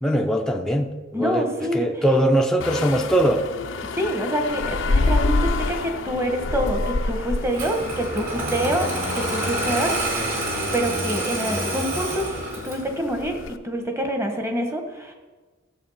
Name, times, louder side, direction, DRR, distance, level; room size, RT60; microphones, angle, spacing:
voice 1, 0.0-1.5 1.7-3.5, right 1 dB, 5° left, 0.7 m, -21 dB
voice 2, 1.1-1.9 3.8-8.9 9.1-10.4 10.7-12.2 12.6-13.3 13.6-15.1, right 1 dB, 15° right, 1.3 m, -26 dB
sound 1, 2.6-13.6, left 3 dB, 65° left, 0.6 m, -28 dB
Engine starting, 7.5-12.9, right 1 dB, 45° right, 3.0 m, -27 dB
13.5 x 7.5 x 5.7 m
head